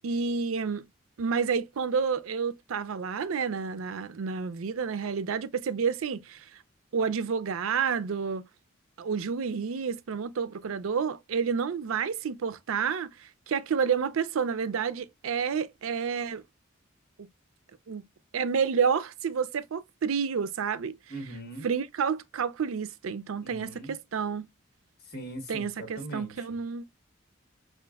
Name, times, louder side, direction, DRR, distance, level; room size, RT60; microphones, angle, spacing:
voice 1, 0.0-0.8 1.2-6.4 6.9-8.5 9.0-16.4 17.2-17.3 17.9-18.0 18.3-21.0 21.6-24.5 25.5-26.8, right 6 dB, 85° right, 0.4 m, -29 dB
voice 2, 21.1-21.7 23.4-23.9 25.1-26.5, right 1 dB, 50° left, 1.3 m, -40 dB
4.9 x 2.5 x 2.3 m
head